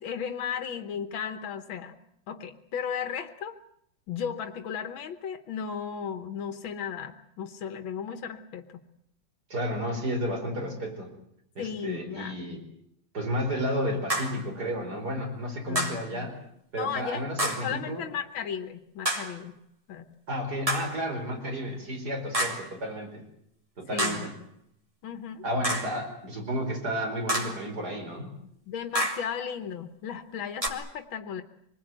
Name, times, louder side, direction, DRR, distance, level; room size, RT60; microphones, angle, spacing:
voice 1, 0.0-2.0 2.3-3.6 4.1-8.8 11.6-12.5 15.7-16.3 16.8-17.3 17.6-19.6 19.9-20.1 23.9-24.3 25.0-25.4 28.7-31.4, left 7 dB, 90° left, 8 dB, 2.0 m, -35 dB
voice 2, 9.5-11.1 11.6-12.6 13.1-16.4 16.7-18.0 20.3-23.2 23.8-24.3 25.4-28.3, equal, 55° right, 3 dB, 5.2 m, -32 dB
sound 1, 14.1-14.5 15.8-16.1 17.4-17.8 19.1-19.4 20.7-21.0 22.3-22.7 24.0-24.4 25.6-26.0 27.3-27.7 29.0-29.3 30.6-30.7, right 1 dB, 15° right, 2.6 m, -29 dB
25.0 x 20.5 x 9.1 m, 0.71 s
omnidirectional pair, 2.1 m